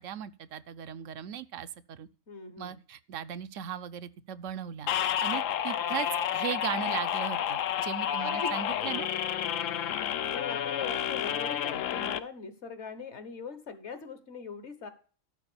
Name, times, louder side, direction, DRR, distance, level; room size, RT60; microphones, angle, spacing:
voice 1, 0.0-2.1 2.6-6.1 6.3-9.1, right 9 dB, 80° right, 1.0 m, -38 dB
voice 2, 2.3-2.8 8.2-8.5 9.7-14.9, left 5 dB, 60° left, 1.6 m, -41 dB
sound 1, 4.9-12.2, left 10 dB, 80° left, 1.0 m, -30 dB
12.0 x 4.7 x 6.9 m
omnidirectional pair, 1.3 m